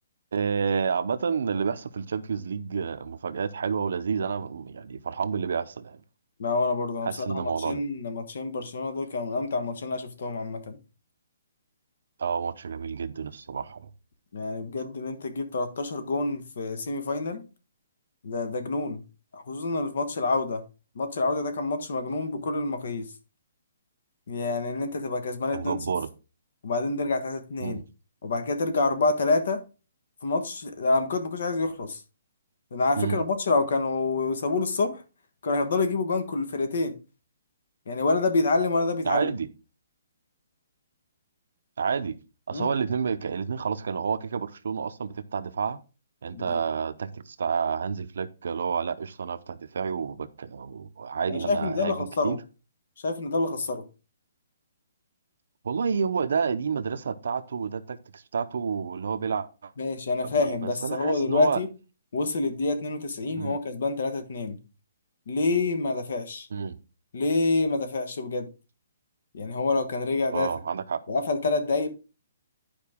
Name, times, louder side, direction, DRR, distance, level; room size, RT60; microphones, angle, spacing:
voice 1, 0.3-6.0 7.0-7.8 12.2-13.9 25.5-26.1 27.6-27.8 33.0-33.2 39.0-39.5 41.8-42.2 42.5-45.8 46.2-52.4 55.6-59.7 60.2-61.6 63.3-63.6 66.5-66.8 70.3-71.0, right 6 dB, 60° right, 0.7 m, -29 dB
voice 2, 6.4-10.8 14.3-17.4 18.2-19.0 19.3-20.6 20.9-23.1 24.3-25.8 26.6-27.8 28.2-29.6 30.2-32.0 32.7-35.0 35.4-36.9 37.9-39.3 42.5-42.7 46.3-46.6 51.3-52.4 53.0-53.8 59.8-61.7 62.1-64.6 65.3-66.5 67.1-68.5 69.3-70.5 71.1-71.9, left 3 dB, 55° left, 1.4 m, -27 dB
10.5 x 5.2 x 3.6 m
hypercardioid pair, 175°, 0 cm